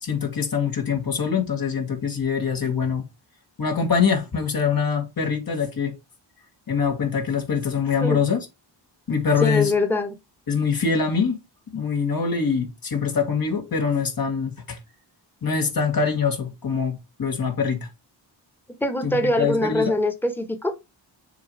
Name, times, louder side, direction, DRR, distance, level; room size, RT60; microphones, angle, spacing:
voice 1, 0.0-3.1 3.6-5.9 6.7-8.4 9.1-9.7 10.5-11.4 11.7-14.8 15.4-17.8 19.0-19.1 19.4-19.9, left 6 dB, 50° left, 1.8 m, -24 dB
voice 2, 9.4-10.1 18.8-20.7, left 1 dB, 5° left, 1.2 m, -23 dB
7.1 x 2.8 x 4.8 m
cardioid pair, 90°, 45 cm